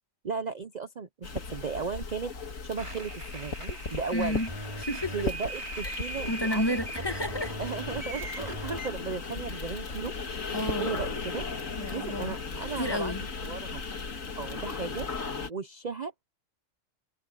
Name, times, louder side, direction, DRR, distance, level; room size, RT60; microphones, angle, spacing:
voice 1, 0.2-2.3 2.6-4.4 5.1-6.8 7.6-10.1 10.8-11.4 11.9-13.1 13.4-13.8 14.4-15.1 15.5-16.2, right 5 dB, 40° right, 0.8 m, -35 dB
sound 1, 1.2-15.5, left 4 dB, 80° left, 2.3 m, -37 dB
sound 2, 2.8-8.9, right 1 dB, 20° right, 5.1 m, -39 dB
voice 2, 4.1-4.5 4.8-5.3 5.8-6.0 6.3-7.5 10.5-10.9 11.8-12.3 12.8-13.2, left 1 dB, 20° left, 1.5 m, -31 dB
omnidirectional pair, 1.4 m